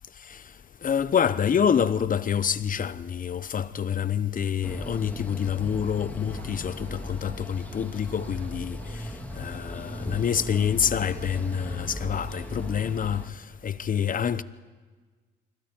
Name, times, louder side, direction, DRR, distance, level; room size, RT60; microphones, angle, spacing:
voice 1, 0.8-9.0 9.3-13.3 13.6-14.4, left 8 dB, 45° left, 1.0 m, -27 dB
sound 1, 4.6-13.3, left 1 dB, 10° left, 2.5 m, -37 dB
sound 2, 6.2-12.7, right 8 dB, 70° right, 1.9 m, -50 dB
26.5 x 25.0 x 4.5 m
cardioid pair, 90°, 20 cm